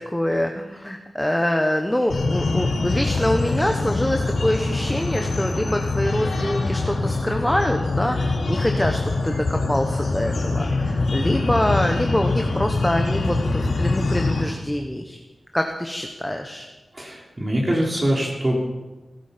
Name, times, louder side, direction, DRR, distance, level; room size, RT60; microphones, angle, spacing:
voice 1, 0.1-15.2 15.5-16.7, left 1 dB, 10° left, 4 dB, 1.2 m, -25 dB
sound 1, 2.1-14.4, left 3 dB, 80° left, 3.4 m, -24 dB
voice 2, 16.9-18.5, right 1 dB, 30° right, -2 dB, 3.3 m, -23 dB
18.5 x 12.5 x 5.2 m, 1.1 s
wide cardioid pair, 75°, 0 cm